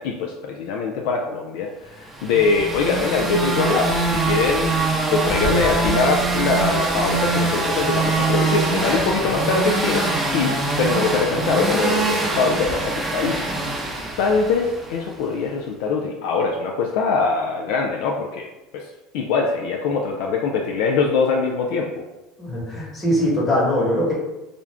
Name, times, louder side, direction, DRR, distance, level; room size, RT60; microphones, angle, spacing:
voice 1, 0.0-4.7 5.1-13.5 14.2-22.0, left 4 dB, 70° left, 0 dB, 0.3 m, -23 dB
sound 1, 2.1-15.0, right 3 dB, 15° right, 0.7 m, -23 dB
voice 2, 22.4-24.1, left 1 dB, 30° left, -4 dB, 1.2 m, -21 dB
2.4 x 2.2 x 3.3 m, 1.0 s
hypercardioid pair, 90°, 0 cm